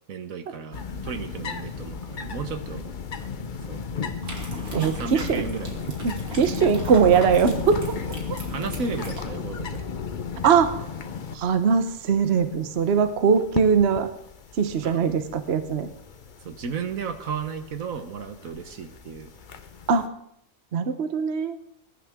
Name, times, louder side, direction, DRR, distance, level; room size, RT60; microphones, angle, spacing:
voice 1, 0.1-2.9 3.7-3.9 4.9-5.8 8.5-9.9 14.8-15.1 16.4-19.3, right 5 dB, 70° right, 9 dB, 1.4 m, -34 dB
sound 1, 0.7-20.1, left 5 dB, 40° left, 0.8 m, -35 dB
sound 2, 4.2-9.2, right 1 dB, 85° right, 3.0 m, -39 dB
voice 2, 4.7-5.4 6.0-7.9 10.4-10.8 11.3-14.1 14.6-15.9 19.9-20.1 20.7-21.6, right 6 dB, 50° right, 10 dB, 1.1 m, -21 dB
21.5 x 11.0 x 3.6 m, 0.72 s
omnidirectional pair, 1.5 m